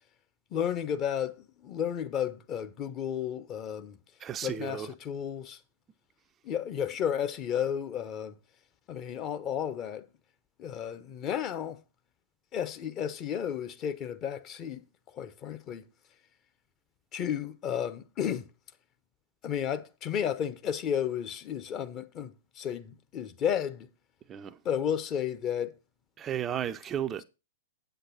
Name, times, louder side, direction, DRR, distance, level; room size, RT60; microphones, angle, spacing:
voice 1, 0.5-4.0 4.4-5.6 6.4-8.3 8.9-10.1 10.6-11.8 12.5-14.8 15.1-15.9 17.1-18.5 19.4-23.9 24.6-25.7, left 9 dB, 30° left, 0.9 m, -32 dB
voice 2, 4.2-4.9 24.3-24.6 26.2-27.2, right 9 dB, 20° right, 0.5 m, -34 dB
8.2 x 8.1 x 4.1 m
figure-of-eight pair, 105°, 0 cm